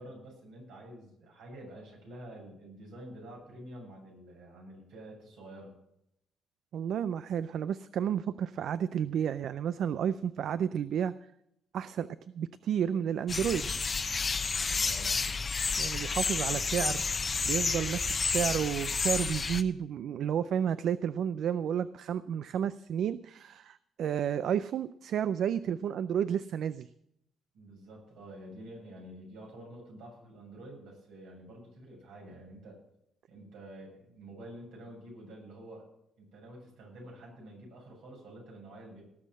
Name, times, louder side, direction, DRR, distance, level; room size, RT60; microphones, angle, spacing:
voice 1, 0.0-5.8 14.7-15.2 27.5-32.8 33.3-35.9 36.2-39.0, right 1 dB, 85° right, -2 dB, 7.5 m, -48 dB
voice 2, 6.7-11.1 11.7-12.1 12.3-13.7 15.8-17.0 17.4-26.9, right 8 dB, 70° right, 14 dB, 0.4 m, -31 dB
sound 1, 13.3-19.6, left 4 dB, 35° left, 0.8 m, -30 dB
18.0 x 6.4 x 7.7 m, 0.78 s
cardioid pair, 90°, 0 cm